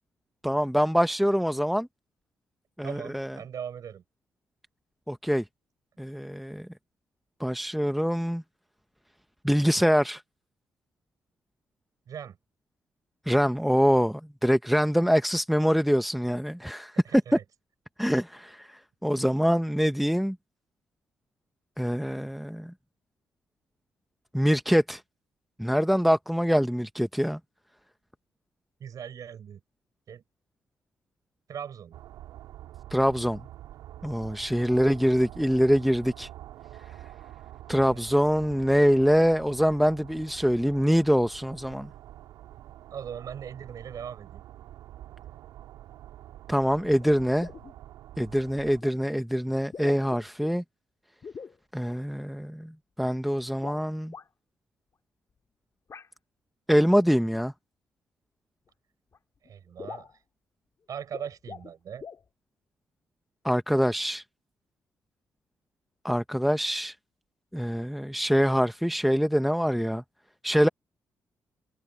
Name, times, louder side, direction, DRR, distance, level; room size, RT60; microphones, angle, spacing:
voice 1, 0.4-1.9 2.8-3.4 5.1-5.4 6.0-6.7 7.4-8.4 9.4-10.2 13.3-17.4 18.0-20.4 21.8-22.7 24.3-25.0 25.6-27.4 32.9-33.4 34.0-36.3 37.7-41.9 46.5-47.5 48.2-50.6 51.7-52.7 53.0-54.1 56.7-57.5 63.4-64.2 66.0-66.9 67.5-70.0 70.4-70.7, equal, ahead, 1.1 m, -24 dB
voice 2, 2.8-4.0 12.1-12.4 17.0-17.4 28.8-29.6 30.1-30.2 31.5-31.9 34.7-35.0 37.7-38.0 42.9-44.4 59.4-60.1 60.9-62.0, right 8 dB, 65° right, 7.1 m, -40 dB
sound 1, 31.9-48.8, right 13 dB, 80° right, 3.2 m, -46 dB
sound 2, 47.0-47.1 47.4-47.8 48.8-48.9 49.6-50.5 51.2-51.6 53.5-54.3 55.9-56.1 57.3-57.5 58.7-58.8 59.1-59.2 59.5-59.6 59.8-60.2 61.0-61.7 62.0-62.3, left 6 dB, 50° left, 2.5 m, -43 dB
supercardioid pair, 50°, 7 cm